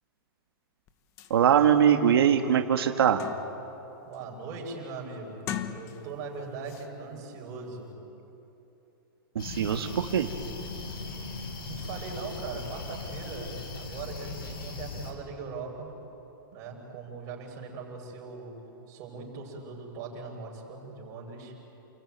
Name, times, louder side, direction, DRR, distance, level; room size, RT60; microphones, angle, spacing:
sound 1, 0.9-1.0 1.2-1.3 1.9-2.0 2.4-3.7 4.1-4.5 5.3-6.3 6.6-6.9, left 10 dB, 25° left, 1.0 m, -39 dB
voice 1, 1.3-3.2 9.3-10.3, right 9 dB, 85° right, 4 dB, 1.6 m, -22 dB
voice 2, 4.0-8.0 11.7-16.0 16.5-18.6 18.9-21.6, right 4 dB, 30° right, -1 dB, 6.4 m, -40 dB
sound 2, 9.4-15.1, left 3 dB, 70° left, 6.7 m, -39 dB
29.0 x 21.5 x 9.3 m, 3.0 s
supercardioid pair, 170°, 12 cm